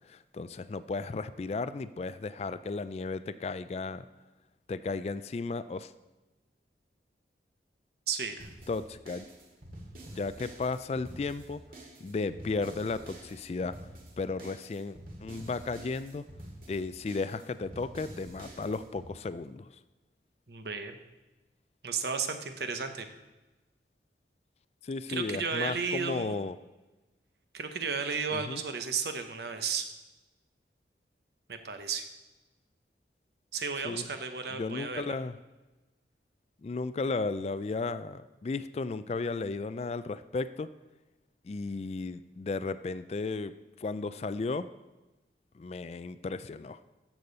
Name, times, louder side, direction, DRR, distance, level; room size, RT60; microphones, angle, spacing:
voice 1, 0.1-4.0 4.7-5.9 8.7-9.2 10.1-11.6 12.0-13.7 14.2-16.2 16.7-19.7 24.8-26.6 28.3-28.6 33.8-34.0 34.5-35.4 36.6-40.7 41.4-43.5 43.8-44.7 45.5-46.8, left 3 dB, 35° left, 14 dB, 0.3 m, -34 dB
voice 2, 8.1-8.5 20.5-21.0 21.8-23.1 25.1-26.4 27.5-29.9 31.5-32.0 33.5-35.1, right 5 dB, 70° right, 7 dB, 0.9 m, -33 dB
sound 1, 8.4-19.1, right 1 dB, 50° right, 2.2 m, -48 dB
13.0 x 7.1 x 4.0 m, 1.1 s
head